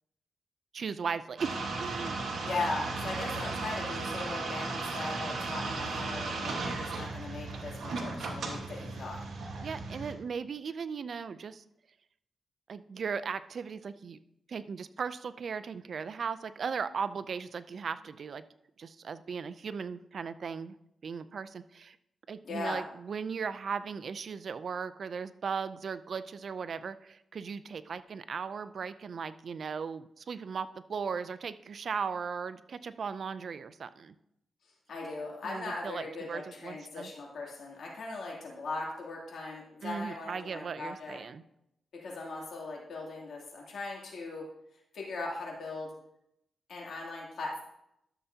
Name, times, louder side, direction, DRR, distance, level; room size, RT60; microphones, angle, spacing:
voice 1, 0.7-2.2 9.6-11.6 12.7-14.2 14.5-18.4 18.8-20.8 21.0-22.0 22.3-34.1 35.4-37.1 39.8-41.4, right 6 dB, 60° right, 14 dB, 0.4 m, -37 dB
sound 1, 1.4-10.1, right 3 dB, 75° right, 1.4 m, -36 dB
voice 2, 2.4-9.2 22.4-22.8 34.9-41.2 41.9-44.4 44.9-45.9 46.7-47.6, left 3 dB, 70° left, -2 dB, 2.7 m, -39 dB
12.0 x 7.0 x 2.8 m, 0.79 s
cardioid pair, 95°, 0 cm